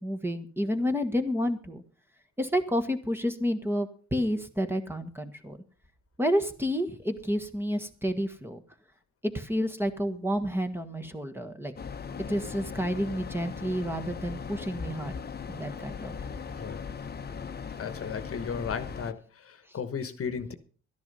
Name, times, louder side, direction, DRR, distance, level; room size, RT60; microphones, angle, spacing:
voice 1, 0.0-1.8 2.4-5.6 6.2-8.6 9.3-11.7 12.3-15.1 15.5-16.1, equal, 5° right, 1.5 m, -30 dB
sound 1, 11.8-19.1, left 6 dB, 30° left, 1.0 m, -39 dB
voice 2, 17.8-20.5, left 6 dB, 50° left, 1.3 m, -35 dB
12.5 x 10.5 x 5.5 m
cardioid pair, 90°, 30 cm